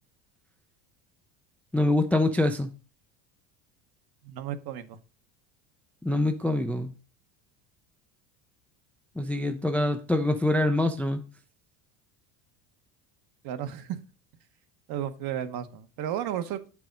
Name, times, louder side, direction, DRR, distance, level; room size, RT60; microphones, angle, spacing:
voice 1, 1.7-2.7 6.0-6.9 9.2-11.2, left 1 dB, 5° left, 0.3 m, -25 dB
voice 2, 4.2-5.0 13.4-14.0 14.9-16.7, right 10 dB, 55° right, 1.0 m, -33 dB
7.3 x 4.8 x 5.1 m
cardioid pair, 125°, 42 cm